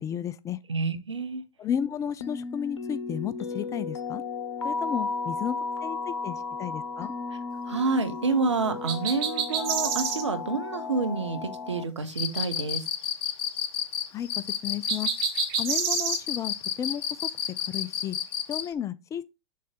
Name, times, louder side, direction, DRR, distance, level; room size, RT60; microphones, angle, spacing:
voice 1, 0.0-0.6 1.6-4.2 4.6-5.6 5.8-7.1 14.1-14.3 14.6-15.1 15.6-17.0 17.7-18.2 18.5-19.2, left 9 dB, 20° left, 0.4 m, -33 dB
voice 2, 0.7-1.4 7.7-12.8, right 4 dB, 80° right, 1.1 m, -28 dB
sound 1, 2.2-11.8, left 4 dB, 75° left, 1.0 m, -34 dB
sound 2, 8.9-10.2 14.9-16.2, right 8 dB, 50° right, 1.3 m, -28 dB
Cricket, 12.1-18.7, left 9 dB, 45° left, 1.0 m, -30 dB
6.6 x 3.3 x 5.3 m
figure-of-eight pair, 100°, 15 cm